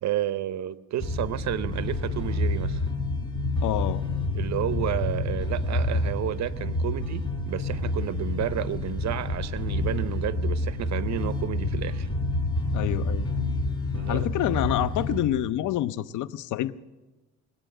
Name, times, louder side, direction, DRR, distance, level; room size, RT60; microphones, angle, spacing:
voice 1, 0.0-2.8 4.3-12.1 13.9-14.3, right 11 dB, 65° right, 14 dB, 0.8 m, -31 dB
sound 1, 1.0-15.2, left 2 dB, 15° left, 3.7 m, -28 dB
voice 2, 3.6-4.0 12.7-13.3 14.1-16.7, left 13 dB, 80° left, 16 dB, 0.6 m, -27 dB
20.5 x 8.8 x 7.7 m, 1.1 s
cardioid pair, 90°, 30 cm